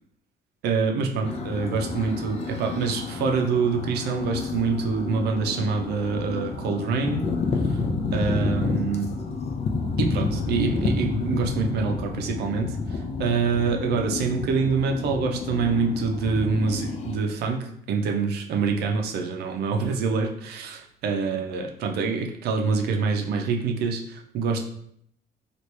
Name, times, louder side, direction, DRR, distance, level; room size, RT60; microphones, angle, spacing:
voice 1, 0.6-7.2 8.1-9.1 10.0-24.6, right 5 dB, 75° right, 2 dB, 0.6 m, -26 dB
sound 1, 1.2-17.2, left 4 dB, 40° left, 0.5 m, -30 dB
3.0 x 2.5 x 3.2 m, 0.69 s
cardioid pair, 110°, 17 cm